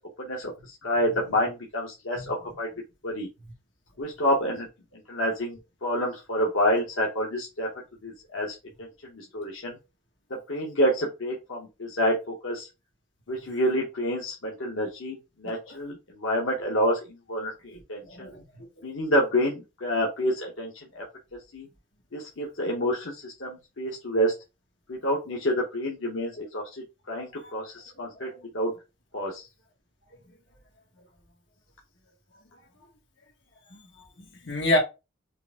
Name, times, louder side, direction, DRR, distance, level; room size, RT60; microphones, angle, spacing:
voice 1, 0.2-0.5 0.8-2.7 3.0-3.3 4.0-4.7 4.9-7.7 8.0-9.8 10.5-12.7 13.3-18.3 18.8-21.0 21.5-21.7 22.1-24.3 24.9-26.7 27.1-28.3 28.5-28.7 29.1-29.4, equal, 85° left, 1.0 m, -28 dB
voice 2, 17.7-18.9 27.4-27.5 28.1-28.4 33.7-33.8 34.2-34.8, left 1 dB, 65° left, 1.5 m, -30 dB
4.6 x 2.5 x 3.5 m
head